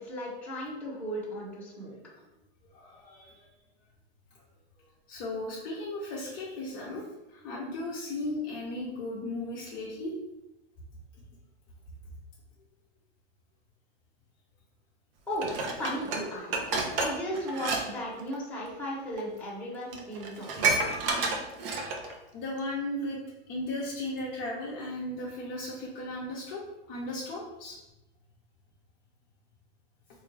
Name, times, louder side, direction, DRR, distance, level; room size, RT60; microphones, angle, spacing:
voice 1, 0.0-1.9 15.3-15.5 15.8-16.5 16.9-21.0, equal, 5° left, -8 dB, 1.0 m, -36 dB
voice 2, 2.7-3.5 4.3-4.4 5.1-10.1 22.3-23.2 23.5-26.6 26.9-27.8, left 1 dB, 35° left, -5 dB, 0.7 m, -36 dB
Dishes pots and pans, 15.4-17.8 18.1-18.4 19.2-19.3 19.6-19.7 19.9-22.1 22.6-22.7, right 3 dB, 55° right, 0.8 m, -30 dB
3.4 x 2.6 x 3.3 m, 0.95 s
hypercardioid pair, 145°, 33 cm